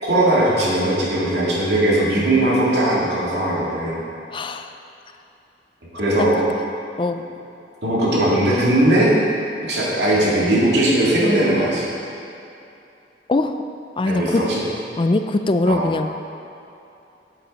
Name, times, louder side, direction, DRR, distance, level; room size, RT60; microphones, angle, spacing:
voice 1, 0.0-4.0 5.9-6.4 7.8-9.2 9.6-11.9 14.1-14.6 15.7-15.8, right 1 dB, 75° right, -6 dB, 2.2 m, -19 dB
voice 2, 4.3-4.7 7.0-7.2 13.3-13.6 14.0-14.4 15.0-16.1, left 2 dB, 30° left, 8 dB, 0.4 m, -21 dB
9.4 x 8.1 x 4.1 m, 2.7 s
head